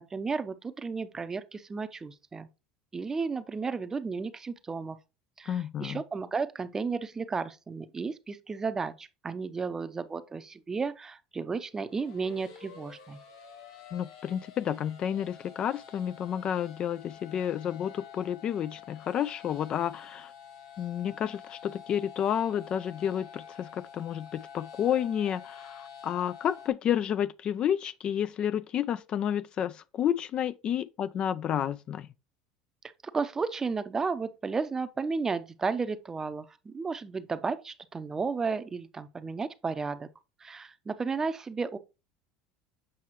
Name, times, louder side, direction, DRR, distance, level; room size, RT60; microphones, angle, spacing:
voice 1, 0.0-2.5 2.9-5.0 5.4-13.2 33.1-40.1 40.4-41.8, right 4 dB, 20° right, 0.6 m, -33 dB
voice 2, 5.5-6.0 13.9-20.3 20.8-32.1, left 9 dB, 45° left, 0.3 m, -30 dB
sound 1, 11.7-26.7, left 7 dB, 80° left, 1.2 m, -49 dB
7.6 x 5.4 x 3.0 m
hypercardioid pair, 90°, 2 cm